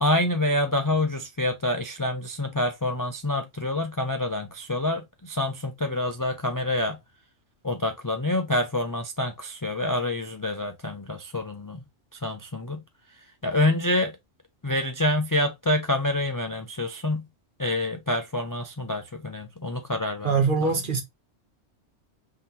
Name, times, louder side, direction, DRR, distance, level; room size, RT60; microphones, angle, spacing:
voice 1, 0.0-7.0 7.6-11.8 12.1-12.8 13.1-14.2 14.6-17.3 17.6-20.8, left 1 dB, 30° left, 0.3 m, -27 dB
voice 2, 20.2-21.0, right 4 dB, 45° right, 1.1 m, -23 dB
5.6 x 2.8 x 2.8 m
omnidirectional pair, 1.2 m